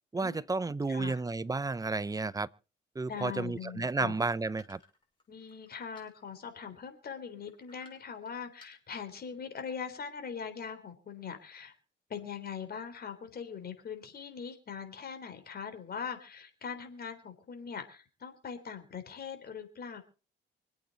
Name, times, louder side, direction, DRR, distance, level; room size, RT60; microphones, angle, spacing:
voice 1, 0.1-2.5 2.9-4.8, right 3 dB, 20° right, 0.6 m, -32 dB
voice 2, 0.9-1.2 3.1-4.2 5.3-11.7 12.1-20.0, left 6 dB, 50° left, 3.7 m, -41 dB
sound 1, 4.6-6.6 7.4-8.3 8.6-9.2, left 3 dB, 25° left, 6.6 m, -58 dB
25.5 x 8.7 x 4.1 m
cardioid pair, 90°, 20 cm